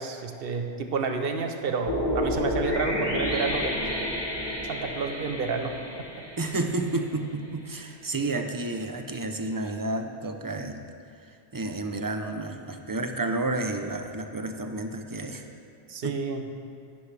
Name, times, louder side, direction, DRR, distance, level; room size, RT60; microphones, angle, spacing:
voice 1, 0.0-4.1 4.7-6.0 15.9-16.5, right 4 dB, 60° right, 5 dB, 1.1 m, -30 dB
sound 1, 1.8-7.0, left 1 dB, 20° left, 2.4 m, -30 dB
voice 2, 6.4-10.8 11.5-15.5 16.0-16.2, right 2 dB, 25° right, 5 dB, 0.6 m, -31 dB
16.5 x 11.5 x 3.4 m, 2.4 s
omnidirectional pair, 1.1 m